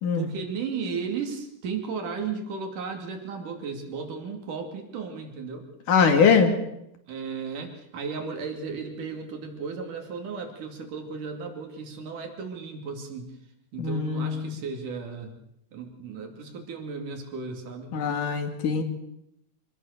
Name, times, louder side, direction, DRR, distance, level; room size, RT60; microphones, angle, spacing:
voice 1, 0.1-5.6 7.1-13.3 13.7-15.4 15.7-17.9, right 5 dB, 90° right, 4 dB, 4.2 m, -35 dB
voice 2, 5.9-6.5 13.8-14.4 17.9-18.8, left 5 dB, 85° left, 6 dB, 3.8 m, -22 dB
26.0 x 19.0 x 6.7 m, 0.79 s
omnidirectional pair, 3.6 m